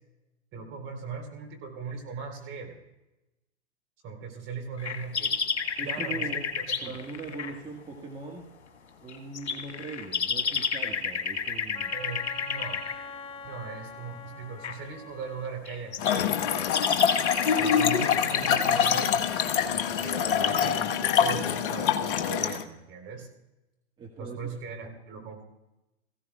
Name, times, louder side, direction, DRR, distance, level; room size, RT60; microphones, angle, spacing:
voice 1, 0.5-2.8 4.0-5.3 5.8-6.4 6.7-7.1 11.9-12.8 13.4-16.8 17.6-23.3 24.2-25.4, right 5 dB, 35° right, 3 dB, 3.7 m, -39 dB
sound 1, 4.8-7.5 9.1-12.9 14.6-14.7 15.7-19.0, left 5 dB, 85° left, 1.6 m, -31 dB
voice 2, 5.8-6.4 6.8-8.5 9.0-11.9 24.0-24.4, right 3 dB, 15° right, -1 dB, 1.7 m, -40 dB
Wind instrument woodwind instrument, 11.7-15.6, left 4 dB, 15° left, 0.6 m, -43 dB
Trickle dribble / Fill (with liquid), 16.0-22.6, left 8 dB, 50° left, 1.1 m, -25 dB
18.0 x 16.0 x 2.3 m, 0.98 s
hypercardioid pair, 110°, 33 cm